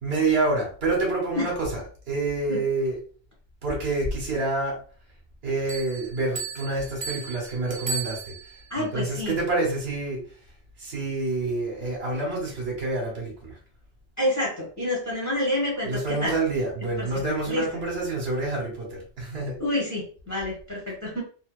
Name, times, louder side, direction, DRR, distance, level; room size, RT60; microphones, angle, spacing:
voice 1, 0.0-3.0 3.6-4.8 5.4-8.3 8.8-10.2 10.8-13.5 15.8-19.6, right 3 dB, 65° right, -1 dB, 1.2 m, -27 dB
Bell, 5.7-8.8, right 5 dB, 35° right, 0.5 m, -35 dB
voice 2, 8.7-9.4 14.2-16.3 17.0-17.6 19.6-21.2, left 1 dB, 20° left, -4 dB, 0.7 m, -28 dB
2.7 x 2.0 x 2.3 m, 0.41 s
omnidirectional pair, 1.1 m